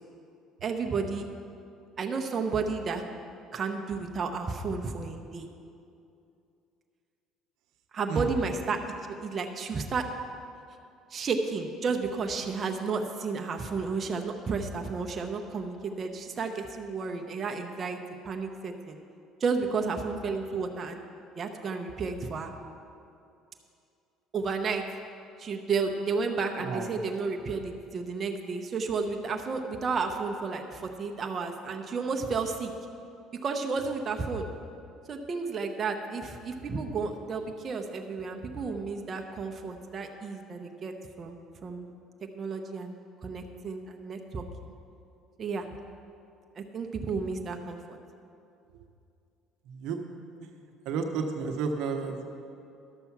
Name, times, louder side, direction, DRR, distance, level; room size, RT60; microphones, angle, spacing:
voice 1, 0.6-1.2 2.0-3.0 3.5-5.5 7.9-8.8 9.1-10.1 11.1-18.0 18.2-19.0 19.4-21.0 21.4-22.5 24.3-24.8 25.4-32.7 33.4-34.5 35.1-40.9 41.2-41.9 42.3-44.7 45.4-45.7 46.6-47.8, right 4 dB, 35° right, 3 dB, 0.8 m, -32 dB
voice 2, 26.6-26.9 49.7-50.0 50.4-50.5 50.8-52.2, right 5 dB, 75° right, 5 dB, 0.9 m, -32 dB
11.5 x 6.8 x 6.0 m, 2.6 s
supercardioid pair, 100°, 0 cm